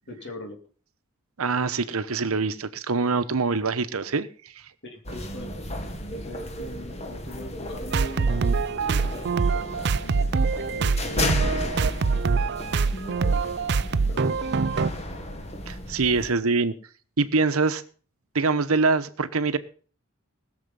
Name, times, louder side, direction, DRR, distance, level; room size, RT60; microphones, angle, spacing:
voice 1, 0.1-0.6 4.8-5.6 6.1-10.2 10.7-13.5 14.0-14.9, left 1 dB, 55° left, 4 dB, 3.0 m, -42 dB
voice 2, 1.4-4.3 15.7-16.7 17.2-17.8 18.3-19.6, right 4 dB, 90° right, 12 dB, 1.0 m, -24 dB
sound 1, 5.0-16.3, left 1 dB, 30° left, 1.7 m, -34 dB
sound 2, 7.9-14.9, right 4 dB, 55° right, 0.5 m, -24 dB
20.0 x 7.1 x 5.5 m, 0.42 s
head